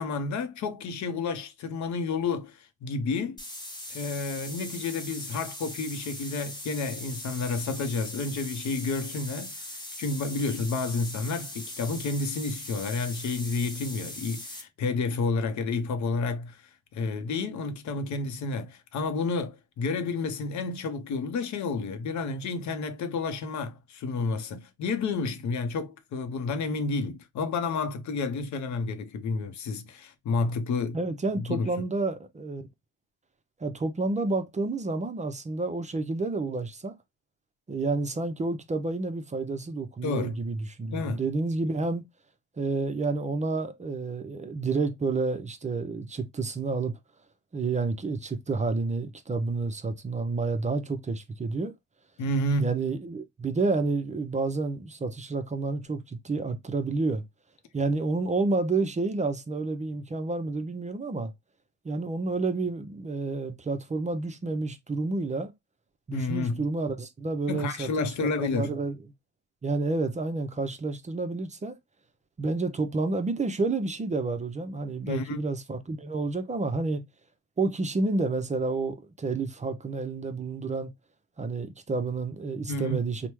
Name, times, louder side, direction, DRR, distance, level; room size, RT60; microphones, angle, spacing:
voice 1, 0.0-3.4 3.9-9.6 10.0-31.0 31.4-31.7 40.0-40.4 40.9-41.2 52.2-52.8 66.1-66.7 67.5-68.8 75.0-75.5 82.7-83.0, left 3 dB, 70° left, 0.7 m, -30 dB
sound 1, 3.4-14.6, left 1 dB, 15° left, 1.0 m, -40 dB
voice 2, 30.9-32.7 33.6-36.9 37.7-42.0 42.6-46.9 47.5-51.7 52.6-57.2 57.7-61.3 61.8-65.5 66.1-69.0 69.6-71.7 72.4-77.0 77.6-80.9 81.4-83.3, right 3 dB, 25° right, 0.5 m, -29 dB
3.2 x 2.1 x 3.0 m
cardioid pair, 90°, 30 cm